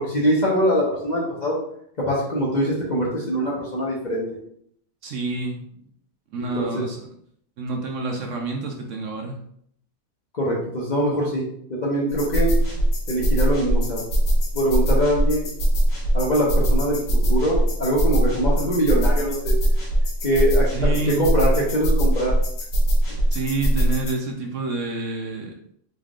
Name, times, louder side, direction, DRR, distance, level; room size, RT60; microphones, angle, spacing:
voice 1, 0.0-1.6 2.0-4.4 6.4-6.7 10.3-11.4 11.7-12.5 13.1-14.0 14.5-15.5 16.1-19.5 20.2-20.9 21.2-22.4, equal, 40° left, -5 dB, 0.6 m, -23 dB
voice 2, 5.0-5.6 6.3-7.1 7.6-9.4 20.7-21.3 23.3-25.5, right 3 dB, 65° right, 2 dB, 0.8 m, -28 dB
sound 1, 12.1-24.1, right 1 dB, 80° left, 1.5 m, -21 dB
4.0 x 3.4 x 2.4 m, 0.68 s
omnidirectional pair, 1.7 m